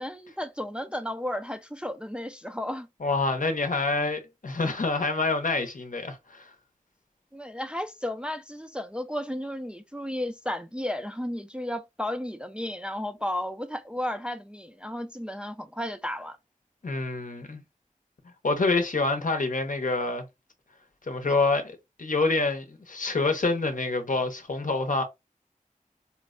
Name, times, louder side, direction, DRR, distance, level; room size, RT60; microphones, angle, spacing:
voice 1, 0.0-2.9 7.3-16.4, left 1 dB, 5° right, 0.3 m, -33 dB
voice 2, 3.0-6.5 16.8-17.6 18.4-20.3 21.1-21.7 22.0-25.0, left 3 dB, 70° left, 0.7 m, -27 dB
4.1 x 2.1 x 2.4 m
wide cardioid pair, 55°, 14 cm